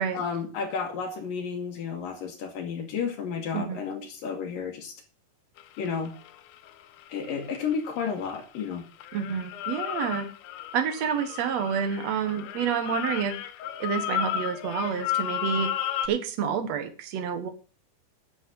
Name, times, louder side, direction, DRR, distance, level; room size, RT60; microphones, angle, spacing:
voice 1, 0.1-4.9 5.8-6.1 7.1-8.8, left 6 dB, 60° left, 4 dB, 2.8 m, -32 dB
sound 1, 5.6-8.7 9.0-16.1, left 11 dB, 85° left, 3.2 m, -33 dB
voice 2, 9.1-10.3 10.7-13.4 13.8-15.7 16.0-17.5, right 7 dB, 80° right, 8 dB, 1.5 m, -28 dB
9.9 x 7.1 x 7.7 m, 0.37 s
omnidirectional pair, 5.3 m